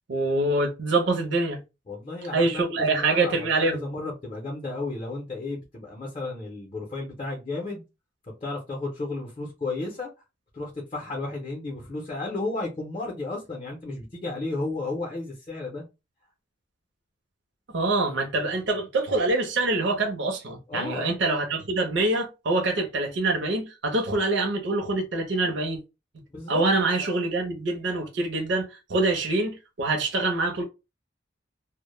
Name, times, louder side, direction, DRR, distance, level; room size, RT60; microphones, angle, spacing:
voice 1, 0.1-1.6 2.3-3.8 17.7-25.8 26.5-30.6, right 2 dB, 70° right, 0.5 m, -25 dB
voice 2, 1.9-7.8 8.4-10.1 10.5-15.8 20.7-21.1 26.3-26.6 27.0-27.1, left 2 dB, 30° left, 0.5 m, -33 dB
2.0 x 2.0 x 3.0 m
head